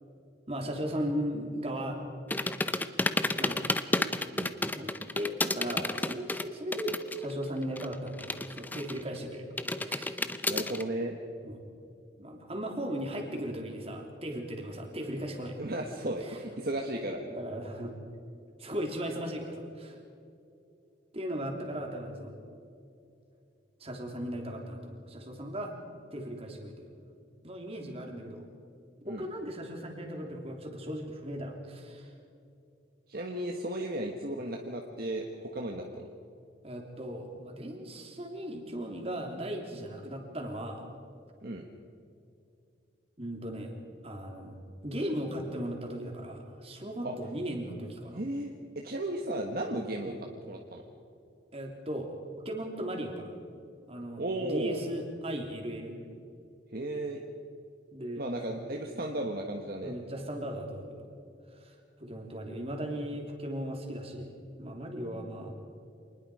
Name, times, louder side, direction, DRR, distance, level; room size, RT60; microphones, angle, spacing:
voice 1, 0.5-2.0 3.4-3.7 4.6-10.2 11.4-11.6 12.2-15.6 16.2-16.4 17.3-17.9 18.6-20.0 21.1-22.3 23.8-25.7 26.1-27.0 27.4-28.5 29.1-32.1 36.6-40.9 43.2-43.7 44.0-48.2 50.0-50.2 51.5-52.1 52.4-53.3 53.9-56.0 57.9-58.2 58.5-58.6 58.9-59.1 59.8-61.1 61.5-65.5, equal, 30° right, 2 dB, 3.1 m, -37 dB
sound 1, 2.3-7.3 7.6-9.2 9.6-10.8, left 2 dB, 10° left, 0.7 m, -31 dB
voice 2, 10.4-11.2 15.6-17.2 29.1-29.3 33.1-36.1 41.4-41.6 47.0-47.1 48.1-50.8 54.2-54.8 56.7-57.2 58.2-59.9, right 1 dB, 50° right, 2 dB, 1.5 m, -35 dB
26.5 x 20.0 x 4.9 m, 2.6 s
head